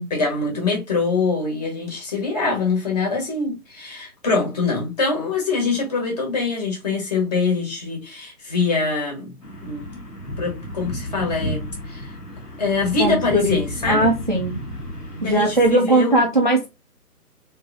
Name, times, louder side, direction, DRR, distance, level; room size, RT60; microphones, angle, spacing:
voice 1, 0.1-9.3 9.6-9.9 10.4-12.1 12.6-14.1 15.2-16.3, left 4 dB, 25° left, 1.5 m, -24 dB
sound 1, 9.4-15.7, equal, 70° left, 1.6 m, -33 dB
voice 2, 13.0-13.6 13.9-14.5 15.2-16.7, right 2 dB, 35° right, 0.5 m, -19 dB
3.5 x 3.2 x 2.6 m
figure-of-eight pair, 150°, 47 cm